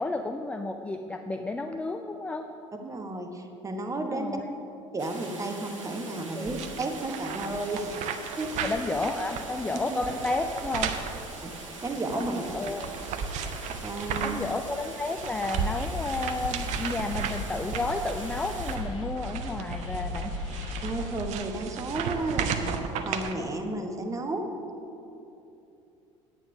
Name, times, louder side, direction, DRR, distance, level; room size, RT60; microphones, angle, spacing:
voice 1, 0.0-2.5 4.1-4.5 6.3-6.5 8.6-10.9 12.1-12.9 14.2-20.3, left 2 dB, 10° left, 6 dB, 0.4 m, -32 dB
voice 2, 2.8-4.4 4.9-8.0 8.4-8.5 9.9-10.0 11.4-11.5 11.8-12.4 13.8-14.4 20.8-22.8 23.0-24.4, right 2 dB, 20° right, 4 dB, 1.1 m, -32 dB
sound 1, 5.0-18.8, right 2 dB, 75° right, 1.2 m, -43 dB
sound 2, 6.5-14.5 14.9-23.3, right 6 dB, 45° right, 0.7 m, -35 dB
sound 3, 15.6-21.2, left 2 dB, 80° left, 1.6 m, -37 dB
9.2 x 8.7 x 5.2 m, 2.8 s
figure-of-eight pair, 65°, 17 cm